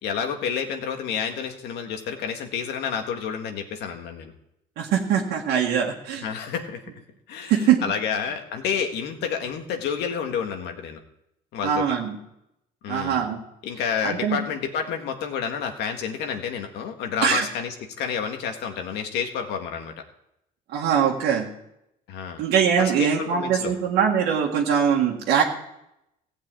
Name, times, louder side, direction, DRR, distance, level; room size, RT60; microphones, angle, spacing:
voice 1, 0.0-4.3 6.2-6.8 7.3-11.0 11.5-11.8 12.8-13.2 13.6-20.0 22.1-22.4 22.8-23.7, left 7 dB, 80° left, 5 dB, 1.7 m, -29 dB
voice 2, 4.8-6.3 7.5-7.8 11.6-12.2 12.9-13.4 14.0-14.4 17.2-17.5 20.7-21.5 22.4-25.4, right 8 dB, 80° right, -1 dB, 1.8 m, -22 dB
15.0 x 5.4 x 8.9 m, 0.83 s
cardioid pair, 110°, 17 cm